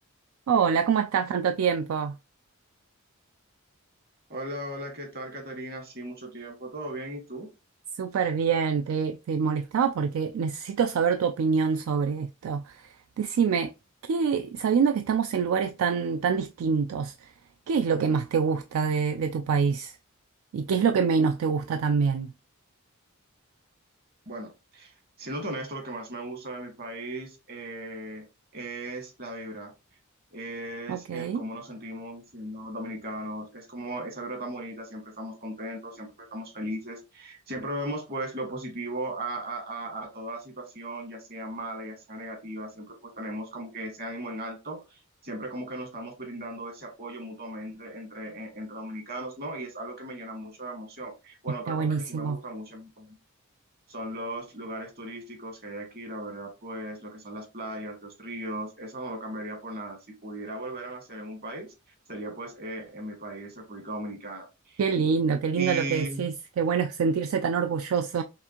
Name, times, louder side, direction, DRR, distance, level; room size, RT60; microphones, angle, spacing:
voice 1, 0.5-2.2 7.9-13.7 14.1-17.3 17.7-20.0 20.5-22.3 30.9-31.4 51.7-52.4 64.8-68.2, right 6 dB, 70° right, 0.3 m, -26 dB
voice 2, 4.3-7.5 24.2-28.3 28.5-29.7 30.3-53.2 53.9-61.7 62.1-64.8 65.5-66.3, right 1 dB, 45° right, 1.7 m, -37 dB
5.7 x 2.5 x 2.9 m
head